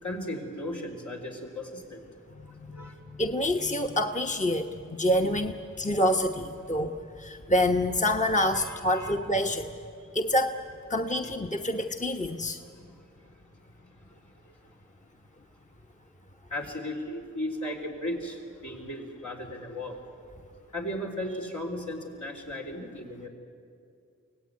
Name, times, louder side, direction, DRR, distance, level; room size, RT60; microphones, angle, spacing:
voice 1, 0.0-2.0 2.7-2.9 8.6-9.1 12.7-12.8 16.5-20.0 20.7-23.3, left 1 dB, 70° left, -1 dB, 4.0 m, -36 dB
voice 2, 2.5-2.9 3.2-9.7 10.1-10.6 10.9-12.6, left 1 dB, 25° left, 4 dB, 1.1 m, -27 dB
24.0 x 17.0 x 9.6 m, 2.4 s
cardioid pair, 40°, 31 cm